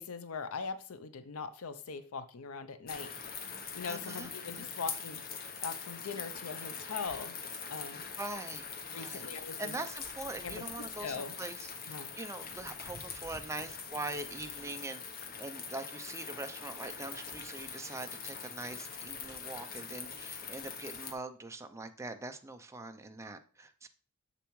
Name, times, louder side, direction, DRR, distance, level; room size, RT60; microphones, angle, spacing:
voice 1, 0.0-3.1 3.7-5.2 5.6-7.4 7.7-8.0 8.9-9.8 10.4-11.4 11.9-12.1, left 5 dB, 75° left, 12 dB, 0.6 m, -41 dB
sound 1, 2.9-21.1, left 6 dB, 45° left, 0.9 m, -43 dB
voice 2, 3.9-4.6 8.2-9.2 9.6-15.0 15.4-23.9, right 2 dB, 15° right, 7 dB, 0.5 m, -43 dB
7.1 x 6.8 x 3.1 m, 0.40 s
head